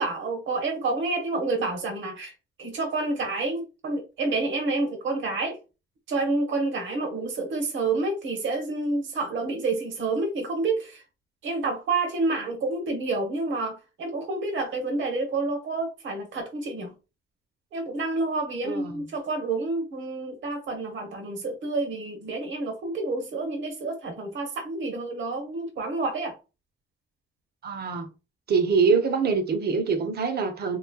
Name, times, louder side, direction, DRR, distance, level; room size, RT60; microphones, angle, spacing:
voice 1, 0.0-2.3 2.6-5.6 6.1-11.0 11.4-16.9 17.7-26.4, right 3 dB, 70° right, 1.2 m, -29 dB
voice 2, 18.6-19.1 27.6-28.1 28.5-30.8, right 5 dB, 55° right, 0.8 m, -24 dB
3.2 x 3.1 x 2.3 m
cardioid pair, 90°, 20 cm